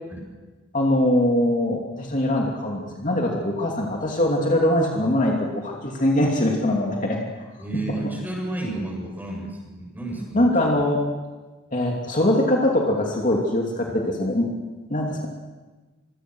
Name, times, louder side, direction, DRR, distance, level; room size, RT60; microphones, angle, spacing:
voice 1, 0.7-7.2 10.3-11.0 11.7-14.5 14.9-15.3, left 1 dB, 40° left, -1 dB, 2.9 m, -22 dB
voice 2, 7.6-10.5 13.9-14.0, right 2 dB, 10° right, -1 dB, 7.4 m, -31 dB
25.5 x 23.0 x 6.3 m, 1.2 s
head